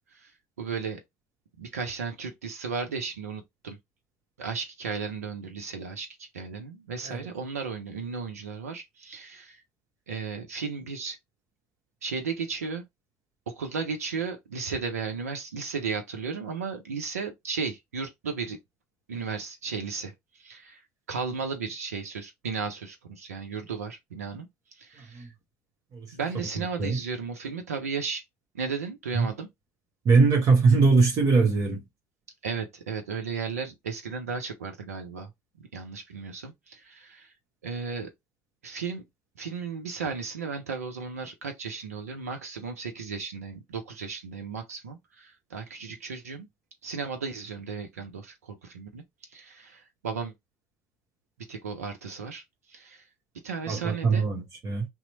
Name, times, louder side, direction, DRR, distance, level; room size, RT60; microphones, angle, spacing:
voice 1, 0.6-1.0 1.6-3.8 4.4-9.6 10.1-11.2 12.0-12.8 13.5-18.6 19.1-20.1 20.4-20.8 21.1-24.5 24.8-25.3 26.1-28.2 28.5-29.5 32.4-35.3 35.7-37.3 37.6-38.1 38.6-39.0 39.4-46.5 46.8-49.0 49.3-50.3 51.5-52.4 52.7-53.0 53.4-54.3, right 5 dB, 85° right, 0.6 m, -35 dB
voice 2, 30.0-31.8 53.7-54.9, right 4 dB, 50° right, 1.0 m, -21 dB
2.9 x 2.1 x 4.0 m
hypercardioid pair, 65°, 8 cm